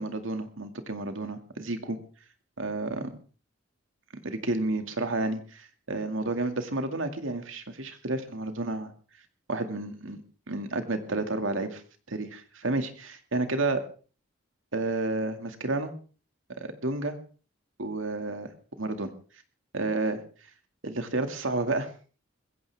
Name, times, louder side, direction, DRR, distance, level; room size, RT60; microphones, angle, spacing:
voice 1, 0.0-2.0 2.6-3.1 4.2-8.9 9.5-10.2 10.5-11.8 12.1-13.8 14.7-15.9 16.6-17.2 17.8-18.5 18.8-19.1 19.7-20.2 20.8-21.9, right 2 dB, 80° right, 7 dB, 2.2 m, -31 dB
21.0 x 16.0 x 3.5 m, 0.38 s
head